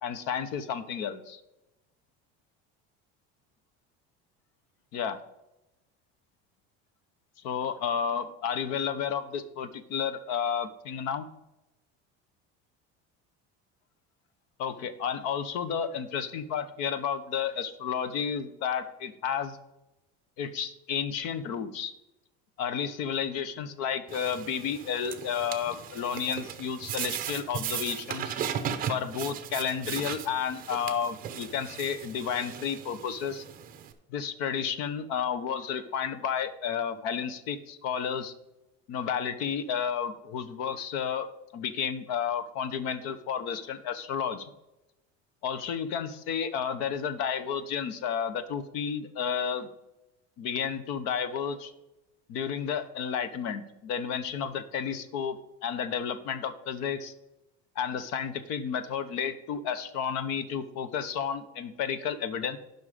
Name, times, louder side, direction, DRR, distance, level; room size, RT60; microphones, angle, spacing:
voice 1, 0.0-1.4 4.9-5.2 7.4-11.3 14.6-19.6 20.4-21.9 22.6-28.3 28.9-33.4 34.1-38.3 38.9-41.3 41.5-44.5 45.4-49.7 50.4-51.7 52.3-57.1 57.7-62.6, left 7 dB, 60° left, 13 dB, 1.0 m, -32 dB
sound 1, 24.1-33.9, right 9 dB, 30° right, 0.8 m, -37 dB
11.0 x 5.6 x 5.1 m, 0.93 s
cardioid pair, 170°, 29 cm